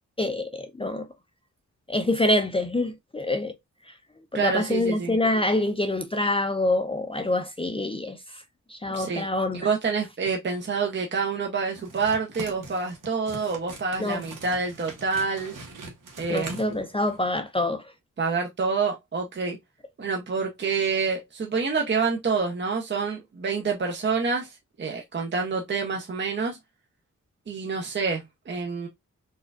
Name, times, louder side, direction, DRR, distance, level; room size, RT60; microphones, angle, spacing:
voice 1, 0.2-1.1 1.9-3.5 3.9-4.0 4.3-8.4 8.7-9.7 14.0-14.2 16.3-17.9, left 1 dB, 20° left, 0.5 m, -26 dB
voice 2, 4.3-5.2 8.9-9.3 9.5-15.5 16.2-16.5 18.2-19.6 20.0-26.6 27.5-28.9, right 5 dB, 35° right, 0.6 m, -27 dB
sound 1, 11.7-17.3, right 3 dB, 85° right, 1.0 m, -42 dB
4.2 x 2.3 x 2.3 m
wide cardioid pair, 85°, 31 cm